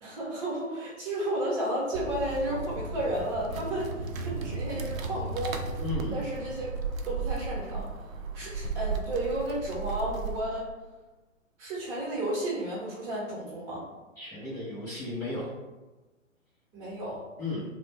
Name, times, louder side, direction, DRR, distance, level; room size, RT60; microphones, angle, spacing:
voice 1, 0.0-5.6 6.1-6.7 7.0-7.9 8.3-10.7 11.6-13.8 16.7-17.2, right 1 dB, 25° right, -6 dB, 1.0 m, -32 dB
sound 1, 1.9-10.4, right 4 dB, 85° right, 0.5 m, -35 dB
voice 2, 5.8-6.2 14.2-15.5 17.4-17.6, left 2 dB, 10° left, -9 dB, 0.5 m, -34 dB
2.5 x 2.0 x 3.5 m, 1.2 s
figure-of-eight pair, 125°, 39 cm